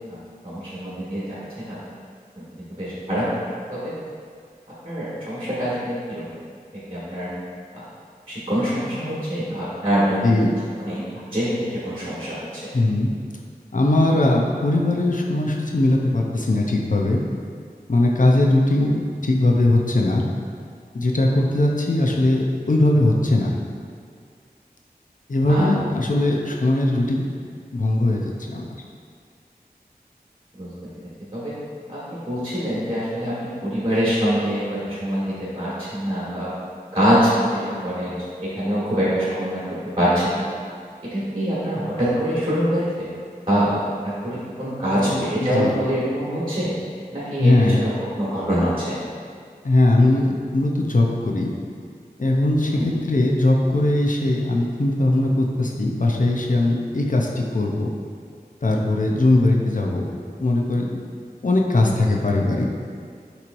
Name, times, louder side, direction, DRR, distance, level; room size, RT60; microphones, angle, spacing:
voice 1, 0.4-1.8 2.3-2.5 2.8-3.4 3.7-3.9 4.8-6.2 6.9-7.3 8.3-10.5 10.8-11.0 11.3-12.7 25.5-25.7 30.6-30.7 31.3-31.5 31.9-36.5 36.9-38.2 38.4-39.6 40.0-40.4 41.1-43.1 43.5-43.7 44.0-46.7 47.1-49.0 52.7-52.9, equal, 35° right, -10 dB, 1.5 m, -24 dB
voice 2, 12.7-13.1 13.7-17.2 17.9-19.0 19.2-20.2 20.9-23.6 25.3-27.3 27.7-28.6 45.0-45.7 47.4-47.8 49.6-51.5 52.2-57.9 58.6-60.1 60.4-60.9 61.4-62.7, left 2 dB, 55° left, -1 dB, 0.6 m, -20 dB
5.8 x 3.1 x 2.6 m, 2.2 s
wide cardioid pair, 40°, 16 cm